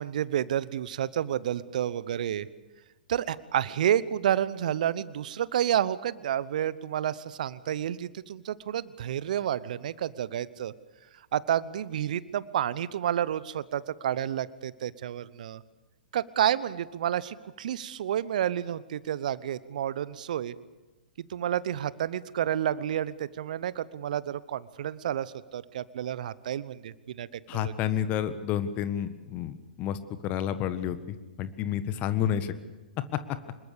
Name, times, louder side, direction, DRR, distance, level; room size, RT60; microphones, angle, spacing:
voice 1, 0.0-2.5 3.1-10.7 11.3-15.6 16.1-20.5 21.2-27.7, right 10 dB, 55° right, 19 dB, 0.9 m, -30 dB
voice 2, 27.5-32.5, left 9 dB, 30° left, 12 dB, 1.6 m, -30 dB
25.5 x 21.5 x 6.9 m, 1.2 s
figure-of-eight pair, 115°, 5 cm